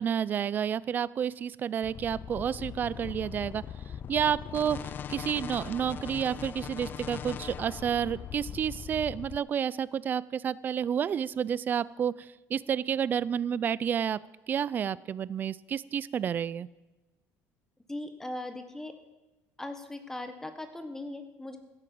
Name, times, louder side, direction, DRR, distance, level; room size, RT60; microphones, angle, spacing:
voice 1, 0.0-3.6 4.1-4.8 5.1-14.2 14.5-16.7, right 8 dB, 35° right, 20 dB, 0.4 m, -30 dB
sound 1, 1.8-9.4, left 8 dB, 35° left, 0.4 m, -40 dB
voice 2, 17.9-19.0 19.6-21.6, left 1 dB, 10° left, 8 dB, 1.3 m, -39 dB
15.5 x 8.8 x 7.7 m, 1.1 s
cardioid pair, 130°, 6 cm